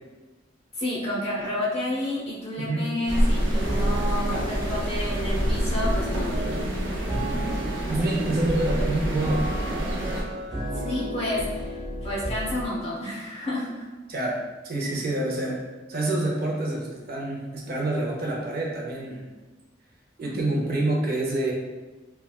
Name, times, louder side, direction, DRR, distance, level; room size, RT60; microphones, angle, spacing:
voice 1, 0.7-6.6 6.9-7.4 10.7-13.8 20.2-20.4, left 1 dB, 35° left, -6 dB, 0.9 m, -30 dB
sound 1, 3.1-10.2, equal, 90° right, 0.7 m, -27 dB
sound 2, 3.5-12.7, equal, 5° left, 1.2 m, -34 dB
voice 2, 7.9-9.5 14.1-15.6 15.9-19.2 20.2-21.5, right 2 dB, 55° right, -2 dB, 0.6 m, -27 dB
3.3 x 2.3 x 2.3 m, 1.2 s
head